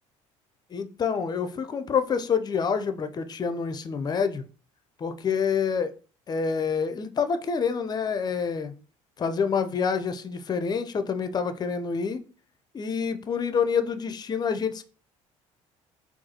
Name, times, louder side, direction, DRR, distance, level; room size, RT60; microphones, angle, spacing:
voice 1, 0.7-4.4 5.0-5.9 6.3-8.7 9.2-12.2 12.7-14.8, left 6 dB, 25° left, 0.4 m, -27 dB
3.8 x 2.3 x 2.8 m
hypercardioid pair, 65°, 16 cm